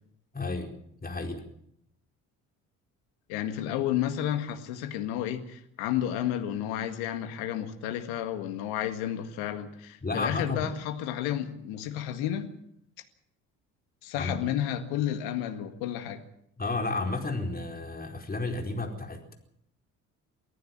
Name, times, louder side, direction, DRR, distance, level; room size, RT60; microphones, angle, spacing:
voice 1, 0.3-0.7 1.0-1.4 10.0-10.7 14.1-14.4 16.6-19.3, left 3 dB, 25° left, 3 dB, 4.5 m, -32 dB
voice 2, 3.3-12.5 14.0-16.2, left 11 dB, 75° left, 8 dB, 1.9 m, -31 dB
24.0 x 15.0 x 7.5 m, 0.73 s
hypercardioid pair, 50°, 39 cm